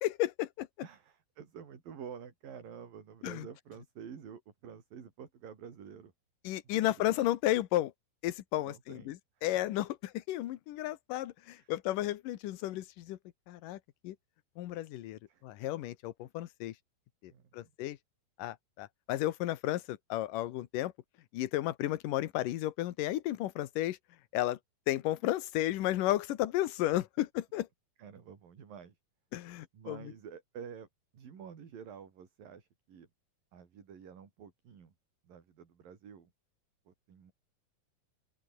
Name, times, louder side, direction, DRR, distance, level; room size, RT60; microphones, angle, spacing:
voice 1, 0.0-0.7 3.2-3.5 6.4-7.9 8.2-13.2 13.5-14.2 14.6-16.7 17.2-18.0 18.4-20.9 21.3-24.0 24.3-24.6 24.9-27.7 29.3-30.0, left 14 dB, 70° left, 2.6 m, -33 dB
voice 2, 0.8-6.1 6.6-7.2 8.6-9.4 11.6-11.7 15.3-15.4 17.3-17.7 28.0-29.0 29.7-30.9 31.1-33.1 33.5-34.9 35.2-36.3 36.9-37.3, right 7 dB, 70° right, 5.2 m, -49 dB
open air
omnidirectional pair, 4.2 m